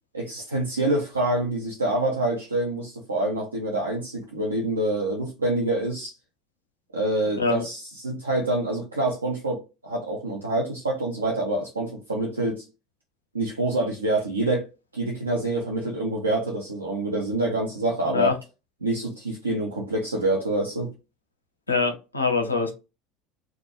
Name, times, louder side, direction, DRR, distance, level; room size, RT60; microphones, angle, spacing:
voice 1, 0.1-6.1 6.9-12.7 13.3-14.7 14.9-18.3 18.8-20.9, right 2 dB, 85° right, 0.5 m, -26 dB
voice 2, 21.7-22.7, left 4 dB, 90° left, 0.5 m, -24 dB
2.2 x 2.1 x 2.9 m
figure-of-eight pair, 75°, 0 cm